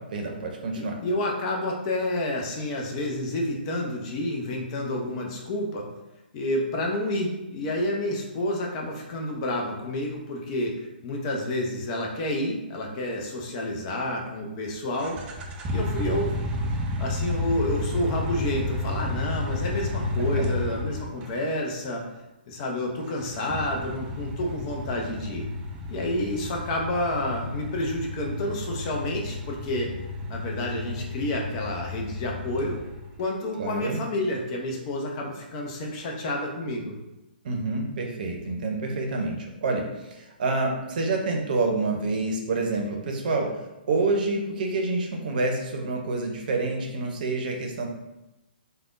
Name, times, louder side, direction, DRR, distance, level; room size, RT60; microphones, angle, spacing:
voice 1, 0.1-0.9 20.4-20.5 33.6-34.0 37.4-43.5 43.9-47.9, right 3 dB, 55° right, 1 dB, 0.7 m, -27 dB
voice 2, 0.8-5.9 6.3-10.7 11.0-15.2 15.7-22.0 22.5-25.4 25.9-29.9 30.3-32.8 33.2-36.9, left 1 dB, 35° left, 0 dB, 0.6 m, -29 dB
sound 1, 14.9-21.3 23.1-33.2, left 2 dB, 20° right, 0.3 m, -31 dB
3.3 x 2.2 x 2.5 m, 0.97 s
hypercardioid pair, 135°, 6 cm